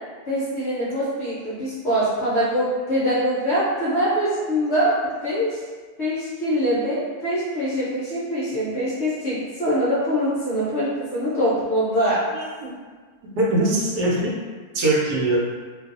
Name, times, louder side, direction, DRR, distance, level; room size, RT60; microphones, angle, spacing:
voice 1, 0.3-4.9 5.2-5.6 6.0-12.2, equal, 60° left, -9 dB, 0.7 m, -23 dB
voice 2, 12.3-12.7 13.3-14.2 14.7-15.4, right 2 dB, 80° right, -4 dB, 1.2 m, -21 dB
2.6 x 2.4 x 2.4 m, 1.4 s
omnidirectional pair, 1.7 m